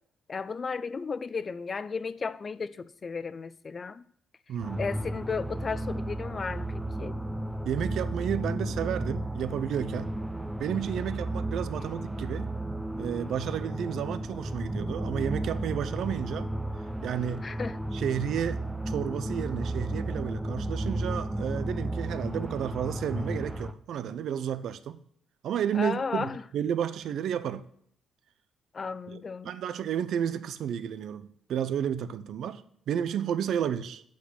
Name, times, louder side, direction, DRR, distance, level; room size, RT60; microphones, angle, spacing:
voice 1, 0.3-4.0 4.8-7.1 17.4-17.8 25.7-26.4 28.7-29.5, left 5 dB, 40° left, 0.6 m, -34 dB
voice 2, 4.5-4.9 7.6-10.1 10.6-12.5 13.0-16.5 17.0-17.5 17.9-25.0 25.4-27.7 29.1-34.0, right 9 dB, 70° right, 0.7 m, -32 dB
sound 1, 4.6-23.7, right 1 dB, 5° right, 0.7 m, -33 dB
8.4 x 6.3 x 8.1 m
cardioid pair, 90°, 0 cm